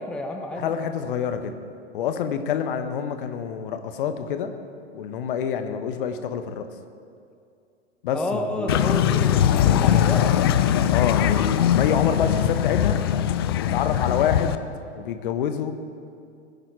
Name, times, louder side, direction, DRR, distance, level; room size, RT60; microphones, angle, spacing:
voice 1, 0.0-0.7 8.1-10.3, left 1 dB, 5° left, 3 dB, 0.7 m, -30 dB
voice 2, 0.6-1.5 1.9-4.5 4.9-6.7 8.0-8.7 10.9-13.0 13.5-14.6 14.9-15.7, left 8 dB, 45° left, 9 dB, 1.2 m, -27 dB
sound 1, 8.7-14.6, left 10 dB, 25° left, 0.3 m, -21 dB
21.0 x 10.5 x 4.5 m, 2.4 s
figure-of-eight pair, 100°, 36 cm